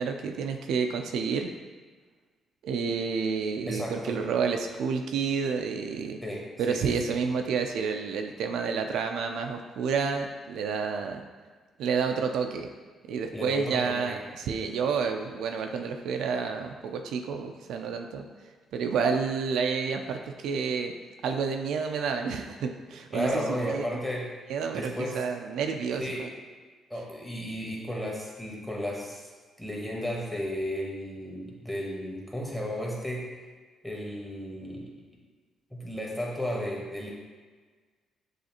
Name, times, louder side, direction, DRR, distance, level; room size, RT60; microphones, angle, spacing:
voice 1, 0.0-1.5 2.6-6.2 6.6-11.2 11.8-12.7 13.1-18.2 18.7-20.9 21.2-23.9 24.5-26.3, right 5 dB, 80° right, 4 dB, 0.3 m, -29 dB
voice 2, 3.7-4.2 6.2-6.4 6.7-7.0 13.3-14.2 23.1-24.2 24.7-25.2 26.0-26.3 26.9-29.3 29.6-33.2 33.8-34.9 35.7-37.1, equal, 5° left, -3 dB, 1.0 m, -33 dB
6.4 x 2.4 x 2.9 m, 1.4 s
cardioid pair, 90°, 0 cm